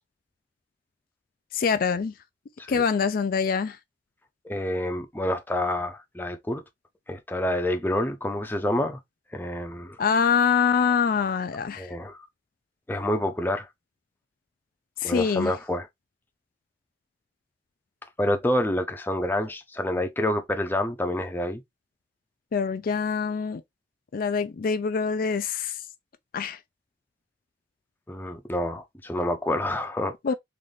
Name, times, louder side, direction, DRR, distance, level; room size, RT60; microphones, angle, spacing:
voice 1, 1.5-2.1 2.7-3.8 10.0-11.9 15.0-15.5 22.5-23.6 24.1-25.8 26.3-26.6 30.2-30.3, left 6 dB, 55° left, 0.4 m, -24 dB
voice 2, 4.4-6.6 7.1-9.0 9.3-10.0 11.8-12.2 12.9-13.7 15.0-15.9 18.2-21.6 28.1-30.1, left 1 dB, 10° left, 0.6 m, -28 dB
3.9 x 2.6 x 3.3 m
head